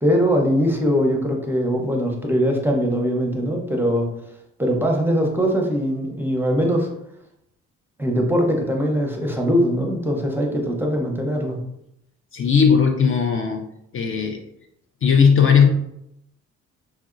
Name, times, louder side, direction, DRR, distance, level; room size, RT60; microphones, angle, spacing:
voice 1, 0.0-4.1 4.6-6.9 8.0-11.6, equal, 5° right, 0 dB, 0.6 m, -21 dB
voice 2, 12.3-13.6 13.9-14.4 15.0-15.7, left 6 dB, 45° left, 3 dB, 0.4 m, -17 dB
3.1 x 2.7 x 2.4 m, 0.79 s
cardioid pair, 90°, 30 cm